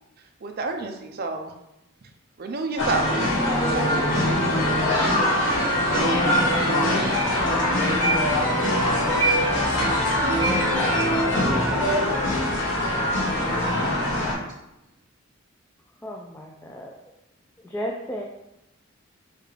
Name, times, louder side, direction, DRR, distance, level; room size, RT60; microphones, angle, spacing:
voice 1, 0.4-1.5 2.4-3.3 3.7-3.9 5.0-5.1, right 3 dB, 50° right, 4 dB, 0.5 m, -29 dB
sound 1, 2.8-14.3, left 1 dB, 75° left, 1.4 m, -22 dB
voice 2, 5.9-9.4 10.4-12.6 13.3-14.6, equal, 85° right, -5 dB, 1.1 m, -34 dB
voice 3, 16.0-17.0 17.6-18.3, equal, 10° left, -1 dB, 0.3 m, -33 dB
6.7 x 2.4 x 3.2 m, 0.88 s
head